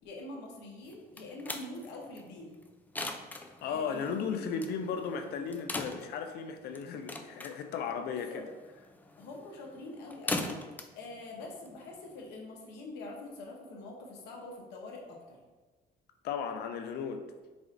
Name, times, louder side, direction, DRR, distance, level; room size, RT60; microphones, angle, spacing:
voice 1, 0.0-2.6 3.6-5.1 8.3-8.4 9.2-10.5 10.9-15.4, left 2 dB, 90° left, -1 dB, 1.0 m, -45 dB
sound 1, 0.9-12.3, left 2 dB, 10° left, 0.3 m, -42 dB
voice 2, 3.6-8.4 16.2-17.3, left 6 dB, 70° left, 7 dB, 0.5 m, -35 dB
4.9 x 2.5 x 3.8 m, 1.2 s
cardioid pair, 110°, 17 cm